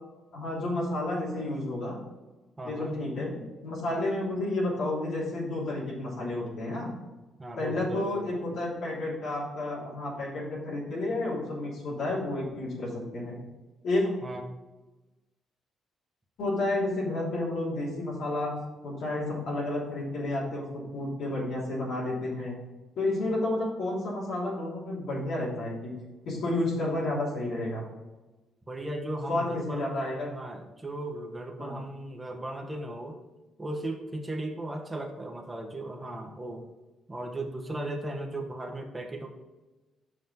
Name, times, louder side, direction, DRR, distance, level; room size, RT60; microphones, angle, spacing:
voice 1, 0.3-2.0 2.6-6.9 7.6-13.4 13.8-14.1 16.4-18.6 18.8-22.5 22.9-25.9 26.2-27.8 29.3-30.3 31.6-31.8, left 2 dB, 70° left, -6 dB, 3.0 m, -31 dB
voice 2, 2.6-2.9 7.4-8.5 11.9-12.0 14.2-14.4 28.7-29.9 30.3-33.2 33.6-36.7 37.1-39.3, right 1 dB, 20° right, 3 dB, 1.2 m, -36 dB
6.2 x 5.8 x 6.0 m, 1.1 s
cardioid pair, 90°, 0 cm